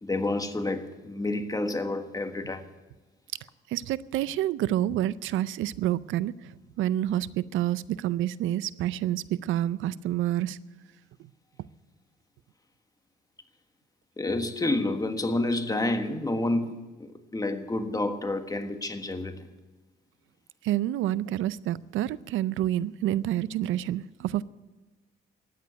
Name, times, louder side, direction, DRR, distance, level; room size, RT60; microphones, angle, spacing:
voice 1, 0.0-2.6 14.2-19.5, left 2 dB, 20° left, 1.5 m, -29 dB
voice 2, 3.7-6.3 6.8-10.6 20.6-24.4, right 13 dB, 85° right, 0.5 m, -28 dB
13.5 x 9.3 x 9.4 m
cardioid pair, 90°, 20 cm